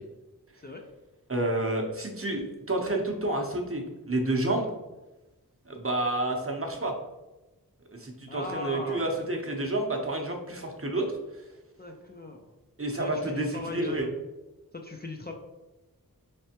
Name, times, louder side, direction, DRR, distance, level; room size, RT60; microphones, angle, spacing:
voice 1, 1.3-4.7 5.7-6.9 8.0-11.1 12.8-14.0, right 1 dB, 35° right, 1 dB, 0.8 m, -29 dB
voice 2, 8.3-9.1 11.8-12.4 13.0-14.1 14.7-15.3, left 2 dB, 25° left, 1 dB, 0.4 m, -38 dB
4.1 x 3.3 x 2.8 m, 1.0 s
wide cardioid pair, 50°, 38 cm